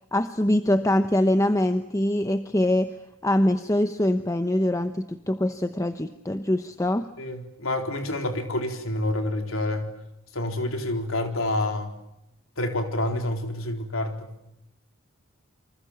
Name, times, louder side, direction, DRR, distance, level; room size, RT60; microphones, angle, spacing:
voice 1, 0.1-2.9 3.2-7.1, left 1 dB, 15° left, 9 dB, 0.9 m, -23 dB
voice 2, 7.2-9.9 10.3-12.0 12.6-14.4, left 1 dB, 75° left, 5 dB, 4.0 m, -28 dB
28.5 x 25.5 x 7.3 m, 0.85 s
head